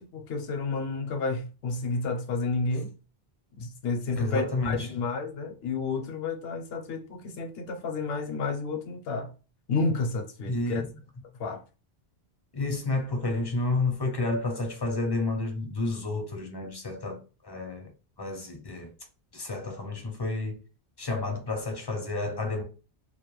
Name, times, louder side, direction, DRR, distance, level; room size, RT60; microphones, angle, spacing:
voice 1, 0.0-2.9 3.6-9.3 9.7-10.8 11.4-11.6, left 3 dB, 75° left, 0.8 m, -31 dB
voice 2, 4.1-4.9 10.5-10.9 12.5-17.9 18.2-18.9 19.3-20.6 21.0-22.6, left 2 dB, 35° left, 0.4 m, -30 dB
2.2 x 2.1 x 3.0 m
omnidirectional pair, 1.0 m